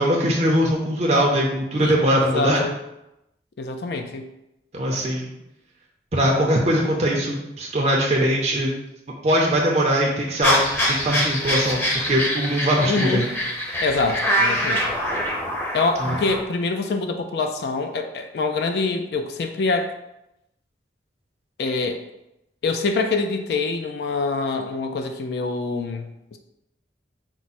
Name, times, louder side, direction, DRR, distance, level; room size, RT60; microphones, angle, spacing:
voice 1, 0.0-2.6 4.7-5.3 6.1-8.7 9.2-13.2 16.0-16.2, equal, 35° right, -2 dB, 0.5 m, -21 dB
voice 2, 1.8-2.8 3.6-4.3 12.9-13.3 13.8-14.8 15.7-19.9 21.6-22.0 22.6-26.4, left 3 dB, 60° left, 6 dB, 0.3 m, -25 dB
sound 1, 10.4-16.4, equal, 10° left, 0.6 m, -24 dB
4.6 x 2.1 x 4.1 m, 0.89 s
head